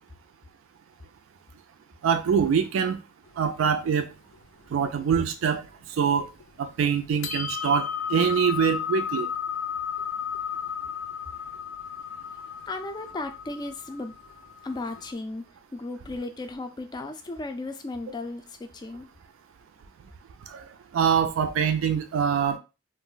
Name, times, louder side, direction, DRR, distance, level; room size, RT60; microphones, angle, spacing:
voice 1, 2.0-3.0 3.4-4.1 4.7-6.3 6.6-9.3 20.5-20.6 20.9-22.6, right 7 dB, 80° right, 0.3 m, -24 dB
sound 1, 3.3-5.3 5.6-5.7 6.1-6.7 7.0-15.1, left 7 dB, 80° left, 0.5 m, -34 dB
voice 2, 12.7-14.1 14.6-15.4 15.7-19.1, left 2 dB, 20° left, 0.3 m, -35 dB
2.4 x 2.1 x 3.8 m
head